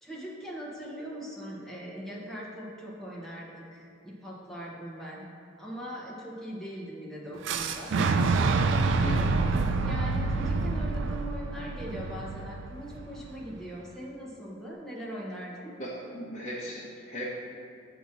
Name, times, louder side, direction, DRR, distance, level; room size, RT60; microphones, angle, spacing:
voice 1, 0.0-5.2 5.6-8.2 9.8-15.7, equal, ahead, -6 dB, 1.1 m, -40 dB
Boom, 7.4-13.3, right 3 dB, 65° right, 0.4 m, -27 dB
voice 2, 15.8-17.3, equal, 35° left, -9 dB, 1.0 m, -37 dB
8.0 x 2.9 x 6.0 m, 2.3 s
head